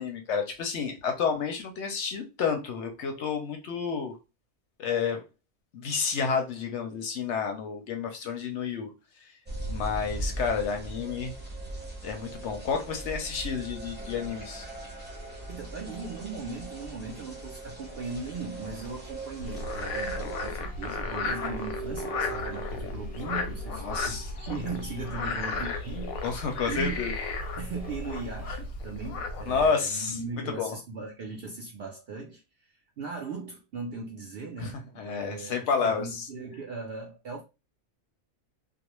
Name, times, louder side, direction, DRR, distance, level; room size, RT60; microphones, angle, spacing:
voice 1, 0.0-4.1 4.8-5.2 5.7-8.9 9.7-11.3 12.0-14.7 23.7-24.3 26.2-27.1 29.5-30.1 30.5-30.7 34.6-36.3, left 6 dB, 65° left, 0.8 m, -30 dB
sound 1, 9.5-20.5, right 2 dB, 10° right, 0.7 m, -39 dB
sound 2, 14.0-28.5, right 3 dB, 15° left, 0.3 m, -47 dB
voice 2, 15.5-26.2 26.7-27.0 27.6-37.4, right 4 dB, 65° right, 0.6 m, -38 dB
Frog, 19.4-29.7, left 3 dB, 90° left, 1.0 m, -34 dB
2.3 x 2.1 x 2.9 m
omnidirectional pair, 1.4 m